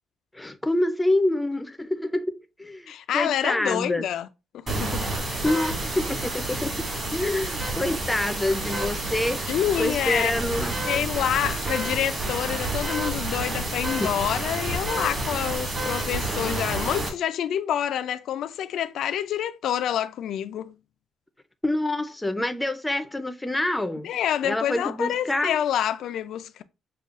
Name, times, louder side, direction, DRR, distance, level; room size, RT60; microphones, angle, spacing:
voice 1, 0.3-2.3 2.6-4.1 5.4-6.9 7.1-9.4 9.8-10.7 21.6-24.1 24.4-25.6, left 1 dB, 10° left, 0.5 m, -26 dB
voice 2, 2.9-4.3 4.5-5.1 9.5-10.3 10.9-20.7 24.0-26.6, left 10 dB, 75° left, 0.4 m, -27 dB
sound 1, 4.7-17.1, right 2 dB, 35° right, 2.1 m, -29 dB
6.6 x 2.3 x 2.5 m
cardioid pair, 90°, 0 cm